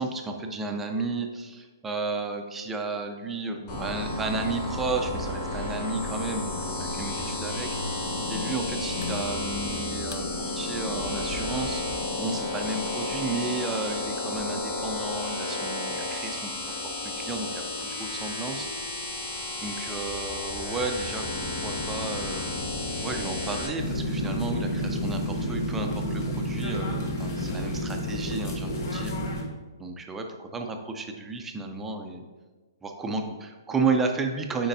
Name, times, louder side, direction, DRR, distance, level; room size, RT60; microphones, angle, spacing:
voice 1, 0.0-18.7 19.6-22.5 23.0-29.1 29.8-32.3 32.8-34.7, right 3 dB, 10° right, 3 dB, 0.5 m, -33 dB
sound 1, 3.7-23.7, left 2 dB, 30° left, 1.9 m, -32 dB
sound 2, 4.0-10.3, left 3 dB, 85° left, 0.5 m, -41 dB
sound 3, 23.8-29.4, equal, 50° left, 1.3 m, -30 dB
8.8 x 4.4 x 2.7 m, 1.3 s
hypercardioid pair, 150°, 2 cm